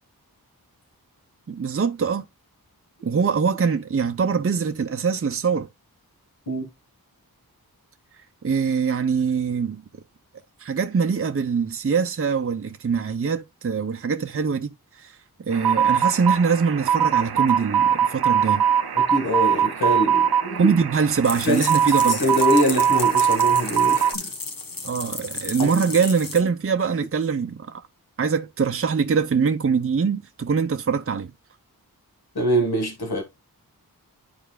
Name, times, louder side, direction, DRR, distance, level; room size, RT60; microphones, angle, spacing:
voice 1, 1.5-2.2 3.0-5.7 8.4-9.8 10.6-18.6 20.6-22.2 24.8-27.8 28.2-31.3, right 5 dB, 35° right, 0.5 m, -23 dB
sound 1, 15.5-24.1, right 8 dB, 85° right, 0.6 m, -21 dB
voice 2, 18.9-20.7 21.4-24.3 25.6-25.7 32.3-33.2, equal, 80° left, 1.6 m, -24 dB
sound 2, 21.2-26.4, left 3 dB, 65° left, 1.2 m, -33 dB
11.0 x 4.6 x 2.3 m
wide cardioid pair, 45°, 37 cm